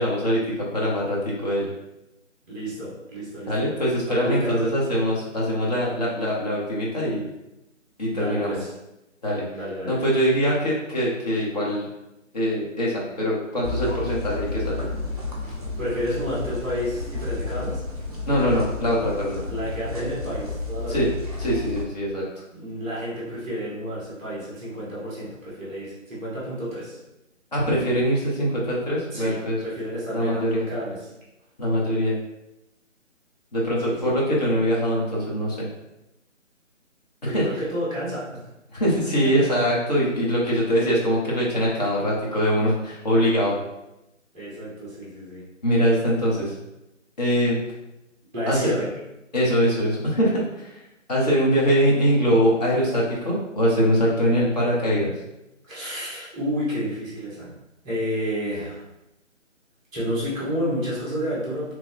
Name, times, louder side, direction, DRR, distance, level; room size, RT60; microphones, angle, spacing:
voice 1, 0.0-1.7 3.5-7.2 8.0-8.6 9.2-9.4 9.9-11.9 12.3-14.9 18.3-19.4 20.9-21.1 21.4-22.2 27.5-29.6 30.1-30.6 31.6-32.1 33.5-35.7 37.2-37.4 38.7-43.5 45.6-46.5 47.2-47.6 48.5-48.6 49.3-50.7 51.1-55.1, equal, 30° left, -5 dB, 0.9 m, -23 dB
voice 2, 2.5-3.7 4.1-4.7 8.1-8.7 9.5-10.0 15.8-17.8 19.5-21.1 22.5-27.0 29.1-31.1 33.8-34.1 37.2-38.4 44.3-45.4 48.3-48.9 55.7-57.5 57.8-58.8 59.9-61.7, equal, 10° right, -12 dB, 0.8 m, -30 dB
sound 1, 13.6-21.8, left 3 dB, 30° right, 0.5 m, -31 dB
3.0 x 2.2 x 3.7 m, 0.92 s
figure-of-eight pair, 160°, 38 cm